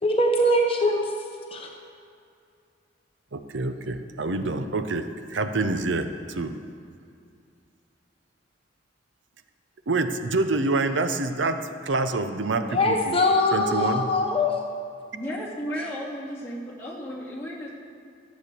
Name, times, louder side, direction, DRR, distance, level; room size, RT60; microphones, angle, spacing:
voice 1, 0.0-1.0 1.5-1.7 12.7-14.6, left 1 dB, 30° left, 1 dB, 0.9 m, -22 dB
voice 2, 3.3-6.6 9.9-13.2 13.5-14.1, right 3 dB, 80° right, 9 dB, 0.7 m, -27 dB
voice 3, 15.1-17.7, equal, 15° left, -6 dB, 2.4 m, -34 dB
14.0 x 8.2 x 6.8 m, 2.3 s
head